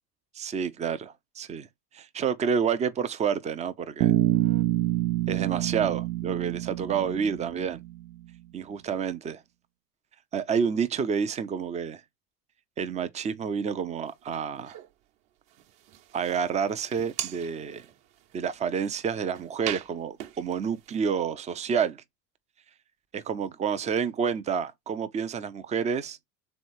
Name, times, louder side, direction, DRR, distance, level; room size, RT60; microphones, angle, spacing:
voice 1, 0.3-1.7 1.9-4.1 5.3-7.8 8.5-9.4 10.3-12.0 12.8-14.8 16.1-17.8 18.3-22.0 23.1-26.2, right 7 dB, 15° right, 0.3 m, -29 dB
Bass guitar, 4.0-8.1, right 15 dB, 80° right, 0.6 m, -27 dB
sound 1, 14.1-14.9 15.5-21.0, right 12 dB, 60° right, 1.0 m, -41 dB
3.5 x 3.2 x 4.4 m
supercardioid pair, 100°, 49 cm